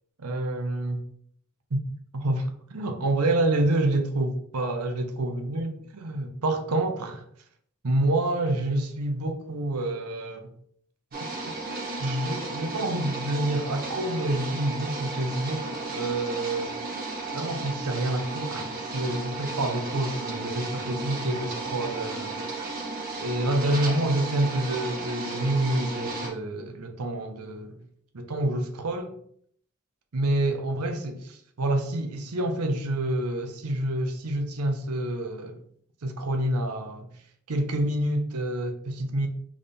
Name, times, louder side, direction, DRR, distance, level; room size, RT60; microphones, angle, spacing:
voice 1, 0.2-1.0 1.7-1.8 2.1-7.2 7.8-10.5 12.0-16.8 17.3-22.5 23.2-27.8 28.1-29.1 30.1-35.6 36.0-37.1 37.5-39.3, right 1 dB, 90° right, 0.7 m, -28 dB
sound 1, 11.1-26.3, right 3 dB, 45° right, 1.3 m, -34 dB
3.6 x 3.3 x 4.1 m
head